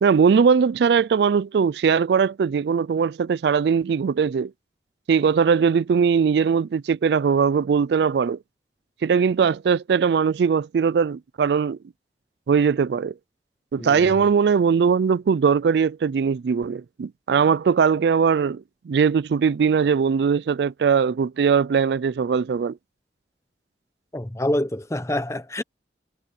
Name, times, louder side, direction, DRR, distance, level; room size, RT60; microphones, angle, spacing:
voice 1, 0.0-4.5 5.1-8.4 9.0-11.8 12.5-13.1 13.7-22.8, right 6 dB, 70° right, 0.3 m, -20 dB
voice 2, 13.8-14.1 24.1-25.6, left 1 dB, 15° left, 0.9 m, -26 dB
head